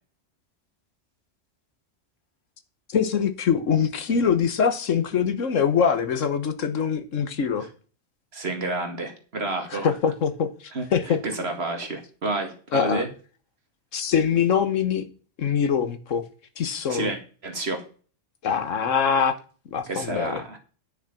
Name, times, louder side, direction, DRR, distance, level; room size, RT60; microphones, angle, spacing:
voice 1, 2.9-7.7 9.7-11.2 12.7-13.0 13.9-15.0 15.4-16.2 16.6-17.1 18.4-19.4 19.7-20.4, left 7 dB, 85° left, 1.5 m, -23 dB
voice 2, 8.3-9.9 10.7-13.1 16.9-17.8 19.9-20.6, right 2 dB, 55° right, 2.3 m, -30 dB
10.0 x 6.4 x 5.8 m
omnidirectional pair, 1.3 m